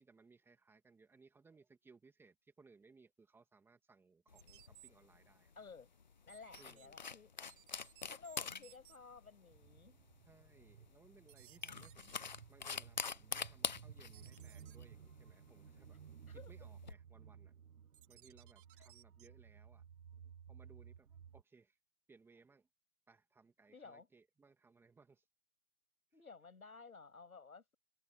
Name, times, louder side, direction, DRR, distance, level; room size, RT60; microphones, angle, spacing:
voice 1, 0.0-5.5 6.6-6.9 10.3-12.2 12.5-16.0 16.3-17.5 18.1-19.8 20.5-21.8 22.1-22.7 23.1-25.2, right 4 dB, 5° right, 2.4 m, -65 dB
sound 1, 4.3-16.9, left 5 dB, 35° left, 0.4 m, -46 dB
sound 2, 4.4-4.9 6.3-6.9 7.5-9.0 11.3-12.1 14.1-14.8 17.9-19.3, right 14 dB, 35° right, 3.4 m, -62 dB
voice 2, 5.6-5.9 6.2-7.3 7.8-10.0 16.3-16.5 23.7-24.1 26.1-27.7, left 4 dB, 90° left, 7.2 m, -55 dB
sound 3, 9.5-21.4, right 8 dB, 90° right, 1.0 m, -57 dB
hypercardioid pair, 150°, 42 cm